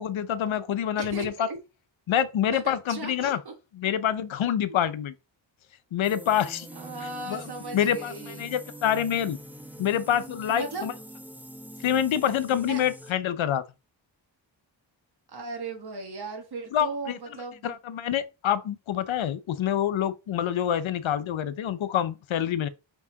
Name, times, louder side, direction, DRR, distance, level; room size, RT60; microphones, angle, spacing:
voice 1, 0.0-1.5 2.1-3.4 3.8-5.1 5.9-6.7 7.3-7.5 7.7-9.4 9.8-10.9 11.8-13.6 16.7-17.2 17.6-22.7, left 9 dB, 80° left, 0.7 m, -26 dB
voice 2, 1.0-1.6 2.5-3.5 6.7-8.5 10.5-10.9 12.5-12.8 15.3-17.8, right 3 dB, 55° right, 1.5 m, -37 dB
sound 1, 6.0-13.1, right 1 dB, 5° right, 0.4 m, -44 dB
5.5 x 4.7 x 3.9 m
wide cardioid pair, 170°, 47 cm